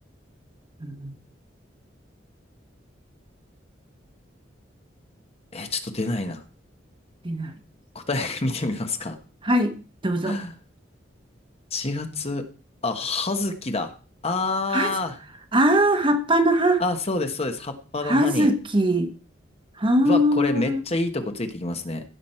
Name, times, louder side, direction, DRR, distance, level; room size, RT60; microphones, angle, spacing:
voice 1, 0.8-1.1 7.2-7.5 9.4-9.7 10.0-10.4 14.7-14.9 15.5-16.8 18.0-19.1 19.8-20.8, equal, 30° right, 6 dB, 1.2 m, -21 dB
voice 2, 5.5-6.4 7.9-9.2 10.2-10.5 11.7-12.4 12.8-13.9 14.2-15.1 16.8-18.5 20.0-22.0, left 2 dB, 35° left, 6 dB, 1.2 m, -27 dB
15.5 x 6.2 x 4.4 m, 0.37 s
head